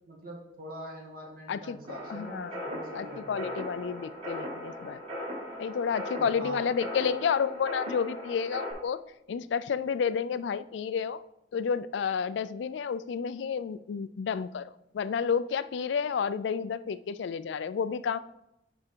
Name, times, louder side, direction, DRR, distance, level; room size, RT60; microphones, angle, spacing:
voice 1, 0.1-3.4 6.2-6.6, right 1 dB, 55° right, 0 dB, 1.9 m, -43 dB
voice 2, 1.5-2.6 2.9-5.0 5.6-9.0 9.3-11.2 11.5-18.2, left 6 dB, 80° left, 15 dB, 0.3 m, -31 dB
sound 1, 1.9-8.7, equal, 30° right, 2.4 m, -39 dB
9.8 x 3.5 x 4.5 m, 0.86 s
head